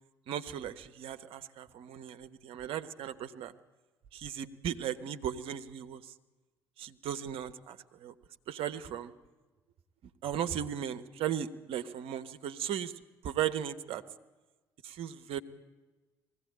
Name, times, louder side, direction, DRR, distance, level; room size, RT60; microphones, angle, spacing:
voice 1, 0.3-3.5 4.1-6.1 6.8-8.1 8.5-9.1 10.2-12.9 13.2-14.0 14.8-15.4, right 10 dB, 55° right, 10 dB, 1.0 m, -36 dB
20.5 x 15.5 x 8.8 m, 1.2 s
figure-of-eight pair, 50°, 11 cm